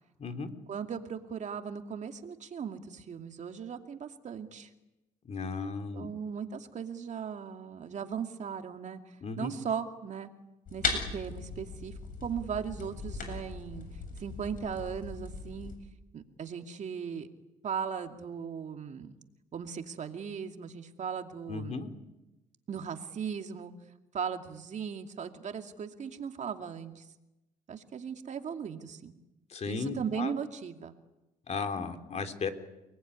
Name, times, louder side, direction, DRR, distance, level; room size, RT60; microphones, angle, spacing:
voice 1, 0.7-4.7 5.9-10.3 10.7-11.9 12.2-13.9 14.2-15.7 16.1-17.3 17.6-19.2 19.5-21.8 22.7-23.7 24.1-27.1 27.7-29.2 29.7-30.9, right 7 dB, 50° right, 6 dB, 2.5 m, -38 dB
voice 2, 5.2-6.1 9.2-9.5 21.5-21.9 29.5-30.3 31.5-32.5, left 4 dB, 45° left, 7 dB, 3.3 m, -35 dB
sound 1, 10.7-15.7, left 4 dB, 60° left, 7.9 m, -38 dB
30.0 x 20.0 x 9.7 m, 0.98 s
cardioid pair, 85°, 16 cm